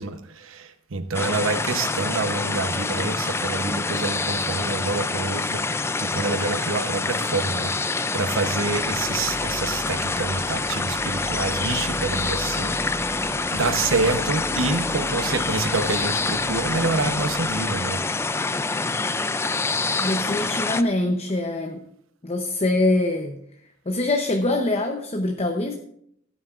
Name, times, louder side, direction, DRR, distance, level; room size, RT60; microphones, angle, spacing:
voice 1, 0.0-18.0, right 3 dB, 90° right, 9 dB, 0.9 m, -27 dB
sound 1, 1.1-20.8, left 3 dB, 15° left, 0.3 m, -26 dB
sound 2, 8.1-18.6, equal, 10° right, 1.3 m, -37 dB
voice 2, 20.0-21.8 22.2-23.4 23.9-25.7, left 2 dB, 30° left, 3 dB, 0.8 m, -24 dB
16.0 x 9.3 x 2.5 m, 0.71 s
head